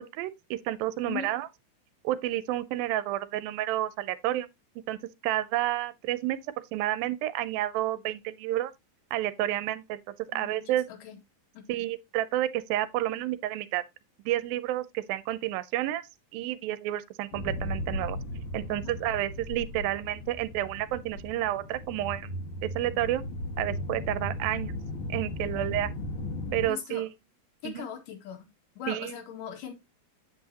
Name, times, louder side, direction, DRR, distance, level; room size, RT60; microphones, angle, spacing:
voice 1, 0.0-1.5 2.0-4.5 4.9-6.4 6.7-8.7 9.1-10.9 11.7-13.8 14.3-18.2 18.5-23.2 23.6-24.7 25.1-25.9 26.5-27.1 27.6-27.9 28.9-29.2, right 14 dB, 80° right, 2.4 m, -30 dB
voice 2, 10.3-11.2 11.5-11.7 18.7-19.0 26.6-27.1 27.6-28.5 28.8-29.7, left 9 dB, 70° left, 3.3 m, -39 dB
sound 1, 17.3-26.7, left 1 dB, 45° left, 2.2 m, -36 dB
8.3 x 7.6 x 2.8 m
omnidirectional pair, 4.2 m